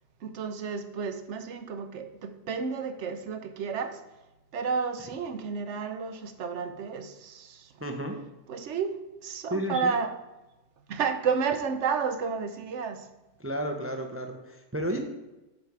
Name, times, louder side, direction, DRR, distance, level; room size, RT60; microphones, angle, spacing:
voice 1, 0.2-4.0 4.5-7.7 8.5-10.1 10.9-13.1, right 5 dB, 65° right, 9 dB, 0.9 m, -31 dB
voice 2, 7.8-8.1 9.5-9.9 13.4-15.0, right 1 dB, 15° right, 4 dB, 0.4 m, -32 dB
7.5 x 5.3 x 4.7 m, 1.0 s
omnidirectional pair, 1.4 m